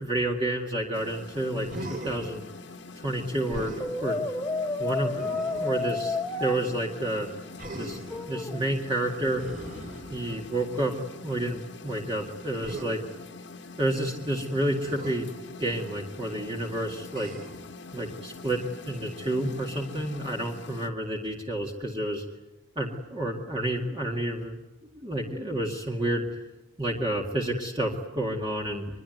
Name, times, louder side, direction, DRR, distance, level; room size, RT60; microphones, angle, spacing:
voice 1, 0.0-2.4 3.0-4.2 4.8-7.3 7.7-8.0 8.3-9.4 10.1-11.0 11.2-13.0 13.8-15.3 15.6-17.3 17.9-22.3 22.8-24.6 24.9-26.3 26.8-28.9, right 1 dB, 25° right, -1 dB, 2.1 m, -30 dB
sound 1, 0.9-20.9, left 3 dB, 70° left, 1.6 m, -44 dB
Human voice, 1.6-2.3 3.5-3.8 5.2-5.8 7.6-8.2 9.3-10.6 12.6-12.9 14.8-15.2 17.1-17.6 19.2-19.8, right 1 dB, 45° right, 5.0 m, -39 dB
Brass instrument, 3.8-6.6 8.1-8.7, left 3 dB, 15° left, 1.3 m, -30 dB
24.0 x 22.0 x 9.3 m, 1.1 s
head